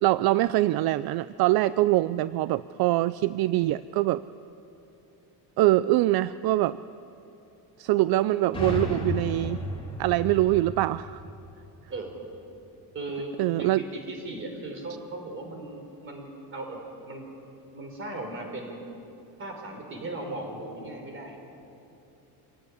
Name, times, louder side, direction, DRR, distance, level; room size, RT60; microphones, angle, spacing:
voice 1, 0.0-4.2 5.6-6.8 7.8-9.6 10.0-11.2 13.4-13.8, right 16 dB, 65° right, 16 dB, 0.5 m, -23 dB
sound 1, 8.5-12.2, left 2 dB, 15° left, 3.4 m, -34 dB
voice 2, 12.9-13.3 13.6-17.2 17.7-18.9 19.4-21.4, right 2 dB, 30° right, 3 dB, 4.4 m, -37 dB
26.0 x 17.0 x 9.8 m, 2.8 s
cardioid pair, 175°, 39 cm